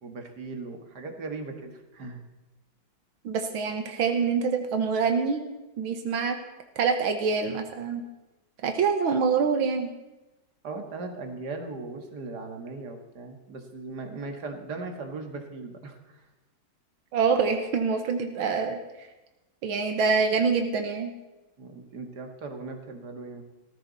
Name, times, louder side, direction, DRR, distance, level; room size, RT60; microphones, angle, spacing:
voice 1, 0.0-2.2 10.6-16.2 21.6-23.4, right 3 dB, 55° right, 4 dB, 2.3 m, -38 dB
voice 2, 3.2-5.4 5.8-6.4 6.8-8.0 8.6-9.9 17.1-18.8 19.6-21.1, right 5 dB, 90° right, 5 dB, 2.1 m, -25 dB
18.0 x 14.5 x 4.1 m, 1.0 s
omnidirectional pair, 2.2 m